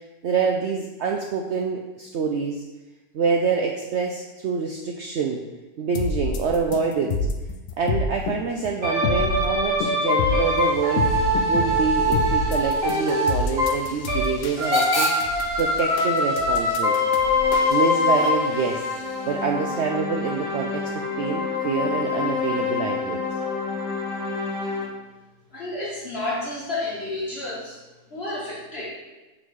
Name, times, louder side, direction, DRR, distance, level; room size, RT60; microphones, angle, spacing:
voice 1, 0.2-2.6 3.1-5.4 5.8-7.3 7.8-11.1 11.5-15.1 15.6-17.0 17.7-18.8 19.3-23.2, right 5 dB, 85° right, 2 dB, 0.6 m, -26 dB
sound 1, 5.9-18.3, left 4 dB, 65° left, 0.8 m, -28 dB
sound 2, 8.8-14.3 14.6-24.8, left 2 dB, 25° right, 1.8 m, -24 dB
Hiss / Train / Alarm, 10.0-19.6, left 2 dB, 25° left, 0.6 m, -35 dB
voice 2, 25.5-27.8 28.1-28.9, left 2 dB, 45° left, -5 dB, 1.2 m, -30 dB
6.0 x 3.8 x 4.7 m, 1.1 s
omnidirectional pair, 1.7 m